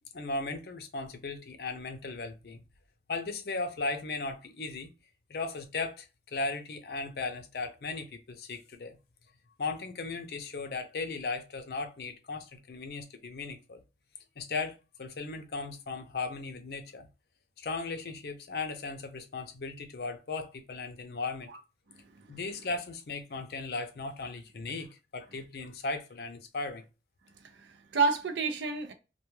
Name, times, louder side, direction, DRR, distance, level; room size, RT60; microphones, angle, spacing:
voice 1, 0.1-2.6 3.1-4.9 5.3-9.0 9.6-13.8 14.4-17.1 17.6-21.5 22.3-24.9 25.1-26.8, left 3 dB, 60° left, 0.5 m, -37 dB
voice 2, 21.9-22.4 27.4-28.9, right 4 dB, 80° right, 0.4 m, -31 dB
2.2 x 2.2 x 3.0 m
head